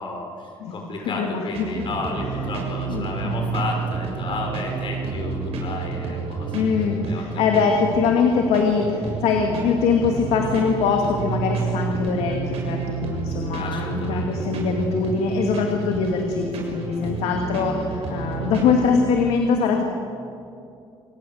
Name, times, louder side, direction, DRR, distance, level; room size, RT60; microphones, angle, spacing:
voice 1, 0.0-6.5 7.0-7.5 13.6-14.3, left 3 dB, 55° left, 2 dB, 6.4 m, -32 dB
voice 2, 1.0-1.9 2.9-3.6 6.5-19.8, left 5 dB, 85° left, 3 dB, 2.3 m, -23 dB
sound 1, 1.5-18.7, right 4 dB, 75° right, 6.7 m, -30 dB
28.0 x 19.0 x 8.0 m, 2.5 s
cardioid pair, 95°, 10 cm